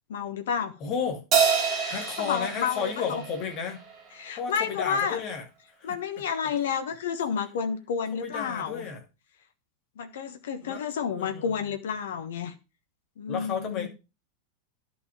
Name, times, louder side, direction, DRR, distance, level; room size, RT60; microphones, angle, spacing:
voice 1, 0.1-0.7 1.8-3.2 4.2-5.2 5.8-8.8 10.0-12.5 13.2-13.9, left 7 dB, 60° left, 9 dB, 1.3 m, -30 dB
voice 2, 0.8-1.2 1.9-3.8 4.4-5.4 5.8-6.0 8.1-9.0 10.6-10.8 11.1-11.7 13.3-13.9, left 6 dB, 35° left, 4 dB, 2.8 m, -33 dB
Crash cymbal, 1.3-4.0, right 6 dB, 35° right, 2.9 m, -27 dB
11.0 x 6.2 x 5.2 m, 0.29 s
figure-of-eight pair, 90°, 0 cm